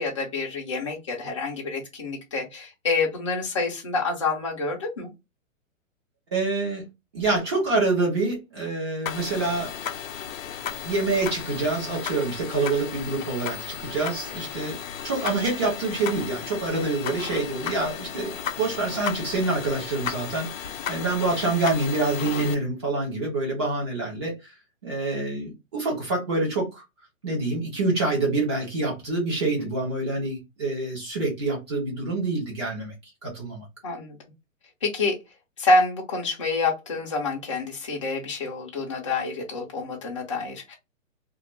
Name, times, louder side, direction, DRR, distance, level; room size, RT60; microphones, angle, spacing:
voice 1, 0.0-5.1 33.8-34.2 34.8-35.2 35.6-40.7, left 3 dB, 25° left, 0.6 m, -27 dB
voice 2, 6.3-6.8 7.1-9.7 10.8-14.8 15.0-24.4 24.8-26.8 27.2-32.9 33.2-33.6, right 3 dB, 20° right, 0.8 m, -26 dB
sound 1, 9.1-22.6, left 9 dB, 75° left, 0.6 m, -35 dB
2.5 x 2.4 x 3.0 m
hypercardioid pair, 175°, 40 cm